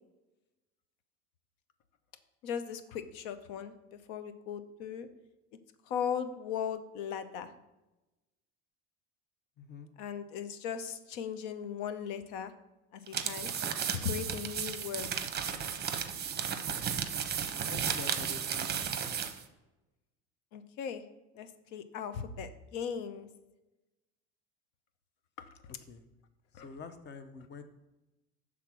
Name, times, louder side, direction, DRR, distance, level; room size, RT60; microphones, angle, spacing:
voice 1, 2.4-3.7 4.1-5.1 5.9-7.5 10.0-12.5 12.9-13.5 14.0-15.1 20.5-21.0 21.3-23.3 25.4-25.5 26.6-26.7, left 7 dB, 75° left, 11 dB, 0.7 m, -38 dB
voice 2, 9.6-9.9 17.7-18.7 19.0-19.2 25.9-26.0 26.6-27.6, left 5 dB, 35° left, 9 dB, 0.7 m, -46 dB
sound 1, 13.1-19.4, right 8 dB, 30° right, 0.7 m, -34 dB
5.9 x 3.6 x 5.9 m, 1.0 s
supercardioid pair, 90°, 31 cm